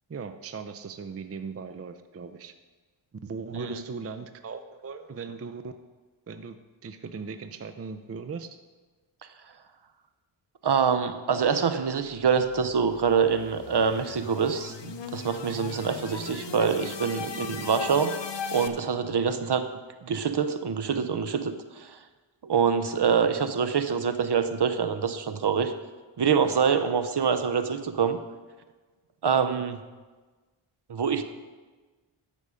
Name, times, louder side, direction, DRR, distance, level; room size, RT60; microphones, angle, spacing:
voice 1, 0.1-2.5 3.2-5.7 6.3-6.6 6.8-8.6, right 5 dB, 30° right, 9 dB, 0.5 m, -38 dB
voice 2, 10.6-18.1 18.5-19.7 20.0-22.0 22.4-25.7 26.2-28.2 29.2-29.8 30.9-31.2, right 6 dB, 55° right, 10 dB, 0.8 m, -25 dB
sound 1, 12.3-18.7, left 6 dB, 60° left, 0.8 m, -38 dB
13.5 x 5.4 x 5.0 m, 1.3 s
wide cardioid pair, 70°, 49 cm